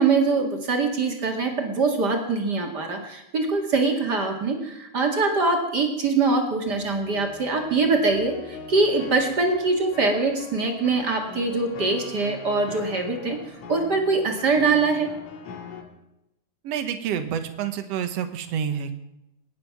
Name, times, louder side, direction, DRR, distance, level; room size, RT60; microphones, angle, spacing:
voice 1, 0.0-13.4 13.7-15.1, right 3 dB, 35° right, 2 dB, 2.0 m, -23 dB
sound 1, 6.7-15.8, left 5 dB, 65° left, 2.8 m, -42 dB
voice 2, 16.6-19.1, right 8 dB, 60° right, 8 dB, 1.9 m, -28 dB
22.0 x 10.0 x 5.9 m, 0.89 s
omnidirectional pair, 3.8 m